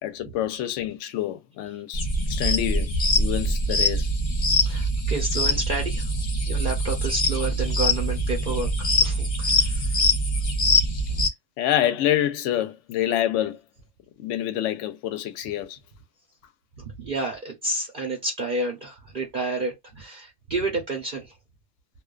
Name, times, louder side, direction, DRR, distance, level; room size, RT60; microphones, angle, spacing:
voice 1, 0.0-2.9 3.2-4.1 11.6-13.6 14.2-15.8, left 12 dB, 70° left, 0.9 m, -27 dB
sound 1, 1.9-11.3, left 1 dB, 40° left, 0.5 m, -23 dB
voice 2, 4.6-6.1 6.5-10.1 10.6-10.7 16.8-21.3, right 2 dB, 50° right, 0.8 m, -30 dB
2.4 x 2.3 x 2.3 m
omnidirectional pair, 1.3 m